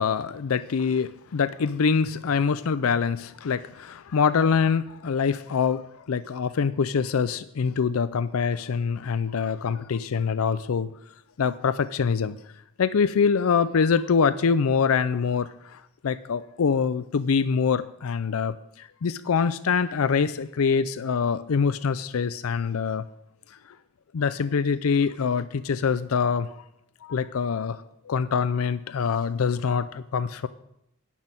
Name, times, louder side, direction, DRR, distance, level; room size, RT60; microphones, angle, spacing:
voice 1, 0.0-10.9 11.4-12.4 12.8-23.0 24.1-26.5 27.0-30.5, left 6 dB, 80° left, 14 dB, 0.5 m, -24 dB
12.0 x 6.2 x 8.9 m, 0.79 s
head